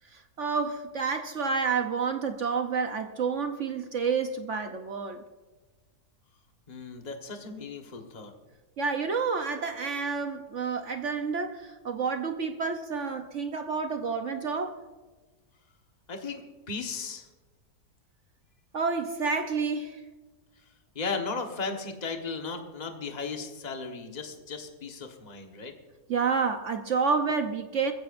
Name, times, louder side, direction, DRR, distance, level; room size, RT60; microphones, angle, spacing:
voice 1, 0.1-5.2 8.8-14.8 18.7-20.0 26.1-27.9, right 5 dB, 55° right, 6 dB, 1.1 m, -29 dB
voice 2, 6.7-8.3 16.1-17.3 20.9-25.7, left 4 dB, 30° left, 3 dB, 1.4 m, -36 dB
22.0 x 15.0 x 2.6 m, 1.3 s
omnidirectional pair, 1.6 m